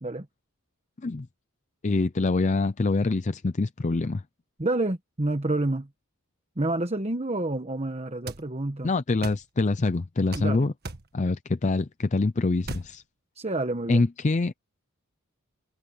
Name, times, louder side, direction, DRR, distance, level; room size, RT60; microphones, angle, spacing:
voice 1, 1.8-4.2 8.8-10.7 11.1-13.0 13.9-14.5, left 3 dB, 35° left, 0.5 m, -25 dB
voice 2, 4.6-5.9 6.6-8.9 10.3-10.7 13.3-14.1, right 2 dB, 30° right, 1.2 m, -28 dB
sound 1, 8.3-8.4 9.2-9.4 10.3-10.5 10.8-11.1 12.6-12.9, right 3 dB, 45° right, 1.7 m, -36 dB
head